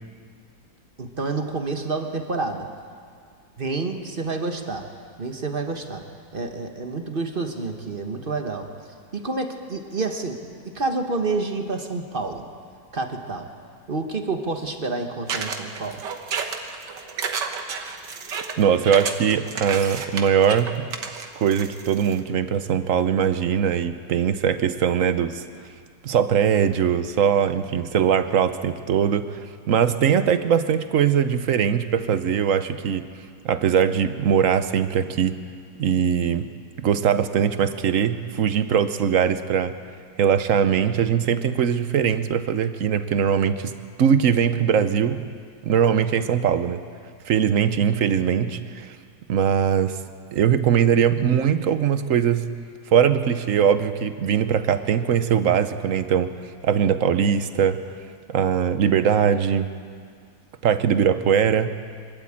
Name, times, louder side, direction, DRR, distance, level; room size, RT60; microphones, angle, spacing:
voice 1, 1.0-2.7 3.6-4.9 5.2-6.0 6.3-12.4 12.9-13.5 13.9-16.0, right 3 dB, 35° right, 5 dB, 1.4 m, -29 dB
sound 1, 15.3-22.2, right 5 dB, 80° right, 1.9 m, -31 dB
voice 2, 18.6-20.9 21.4-25.4 26.0-33.1 33.4-35.4 35.8-36.5 36.8-39.8 40.2-43.7 44.0-45.2 45.6-46.8 47.3-49.0 49.3-50.0 50.3-52.5 52.9-56.3 56.6-57.8 58.3-59.7 60.6-61.7, right 8 dB, 60° right, 11 dB, 1.0 m, -21 dB
25.0 x 12.5 x 8.8 m, 2.1 s
omnidirectional pair, 1.9 m